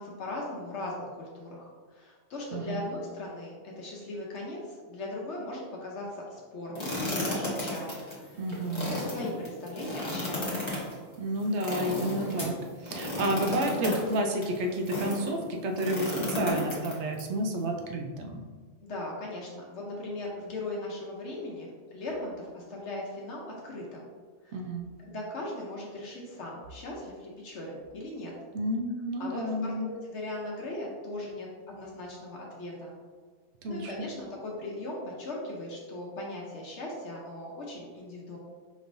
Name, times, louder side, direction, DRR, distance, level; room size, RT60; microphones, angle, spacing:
voice 1, 0.0-8.4 8.7-10.7 18.8-24.1 24.4-24.6 25.0-28.3 29.2-32.9 33.7-38.4, left 1 dB, 75° left, -2 dB, 1.0 m, -39 dB
voice 2, 2.5-2.9 8.4-8.9 11.2-12.6 12.8-18.4 24.5-24.9 28.5-29.9 33.6-33.9, right 1 dB, 70° right, 3 dB, 0.9 m, -30 dB
sound 1, 6.7-15.3 15.7-17.2, left 1 dB, 25° left, 0.9 m, -33 dB
5.1 x 3.1 x 2.6 m, 1.5 s
omnidirectional pair, 1.2 m